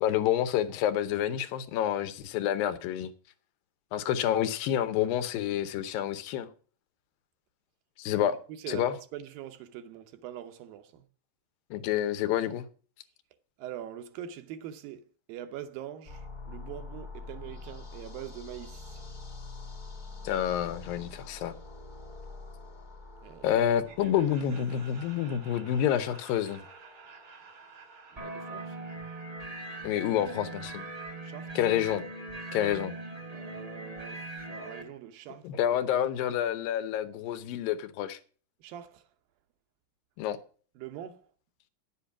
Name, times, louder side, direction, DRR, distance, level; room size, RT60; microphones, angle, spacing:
voice 1, 0.0-3.1 3.9-6.5 8.0-8.3 8.7-8.9 11.7-12.7 20.2-21.5 23.4-26.6 29.8-30.8 31.6-32.1 32.5-32.9 35.4-38.2 40.2-40.4, left 10 dB, 85° left, 2.7 m, -28 dB
voice 2, 8.6-11.0 13.6-15.0 15.3-19.0 23.2-23.6 28.1-28.8 31.2-31.5 33.3-35.8 38.6-39.0 40.8-41.3, right 11 dB, 85° right, 2.7 m, -43 dB
sound 1, 16.0-29.9, left 3 dB, 40° left, 0.6 m, -47 dB
Laughter, 23.8-30.8, right 5 dB, 70° right, 4.1 m, -54 dB
sound 2, 28.2-34.8, right 2 dB, 50° right, 0.4 m, -40 dB
10.0 x 7.8 x 5.9 m
omnidirectional pair, 4.0 m